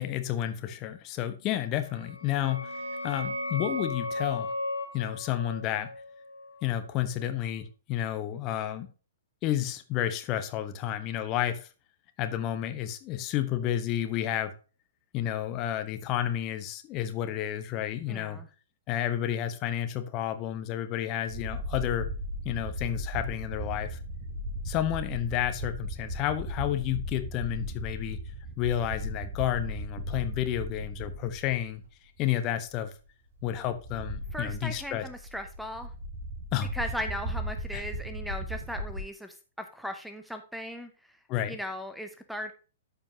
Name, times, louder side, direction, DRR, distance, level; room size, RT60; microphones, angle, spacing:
voice 1, 0.0-2.7 3.0-4.5 4.9-5.9 6.6-8.9 9.4-11.7 12.2-14.5 15.1-18.4 18.9-22.1 22.4-24.0 24.6-28.2 28.6-31.8 32.2-32.9 33.4-35.0 36.5-36.7 37.7-37.8 41.3-41.6, left 11 dB, 30° left, 1.0 m, -31 dB
sound 1, 1.9-7.3, left 1 dB, 85° left, 3.8 m, -36 dB
voice 2, 18.1-18.5 33.6-33.7 34.3-35.9 36.7-41.2 41.5-42.5, equal, ahead, 0.8 m, -38 dB
sound 2, 21.3-31.9 32.2-32.3 33.4-39.0, equal, 45° right, 3.3 m, -37 dB
13.5 x 5.1 x 2.8 m
figure-of-eight pair, 110°, 0 cm